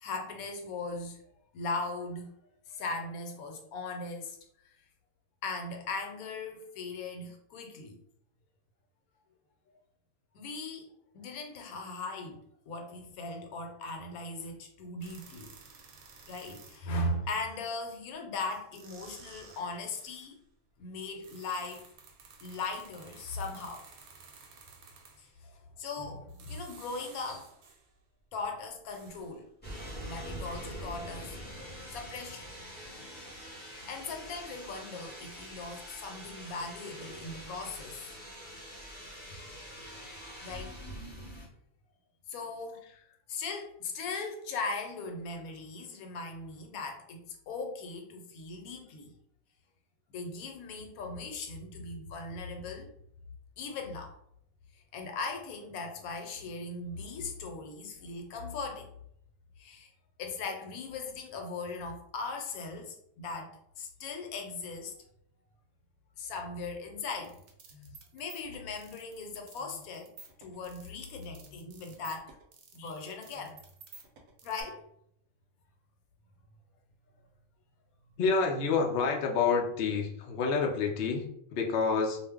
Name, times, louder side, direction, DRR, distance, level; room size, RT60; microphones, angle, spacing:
voice 1, 0.0-1.2 1.5-2.3 2.6-4.8 5.4-8.0 9.7-9.8 10.3-15.5 16.3-20.4 20.8-21.9 22.4-23.9 25.2-27.6 28.3-29.5 30.1-32.5 32.9-33.3 33.9-38.1 40.4-40.8 42.3-42.9 43.3-49.1 50.1-52.9 53.6-54.1 54.7-58.9 59.6-59.9 60.2-64.9 66.2-67.4 68.1-70.1 70.4-72.4 72.7-73.6 74.4-74.8, left 3 dB, 90° left, 3 dB, 1.1 m, -39 dB
sound 1, 15.0-17.0 18.1-18.2 18.5-20.4 21.0-25.4 26.2-27.9 28.4-30.0 30.3-30.4, right 5 dB, 90° right, 1.0 m, -54 dB
sound 2, 29.6-41.4, equal, 10° left, 0.6 m, -44 dB
sound 3, 67.1-74.6, right 3 dB, 65° right, 0.8 m, -53 dB
voice 2, 78.2-82.2, left 4 dB, 65° left, 1 dB, 0.6 m, -28 dB
2.5 x 2.0 x 3.4 m, 0.71 s
omnidirectional pair, 1.5 m